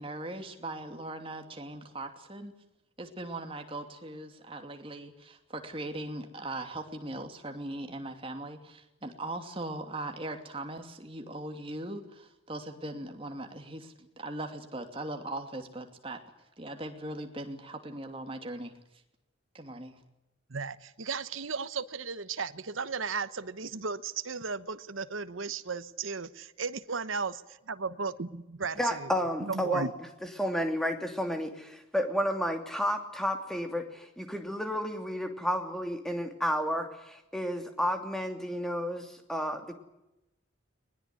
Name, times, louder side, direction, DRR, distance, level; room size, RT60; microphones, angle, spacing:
voice 1, 0.0-2.5 3.0-16.2 16.6-18.7 19.5-20.0, right 1 dB, 30° right, 5 dB, 2.8 m, -39 dB
voice 2, 20.5-29.1 29.4-29.9, right 5 dB, 85° right, 13 dB, 1.1 m, -35 dB
voice 3, 28.8-29.9 30.4-39.7, equal, ahead, 5 dB, 2.9 m, -31 dB
21.5 x 20.5 x 9.7 m, 0.92 s
head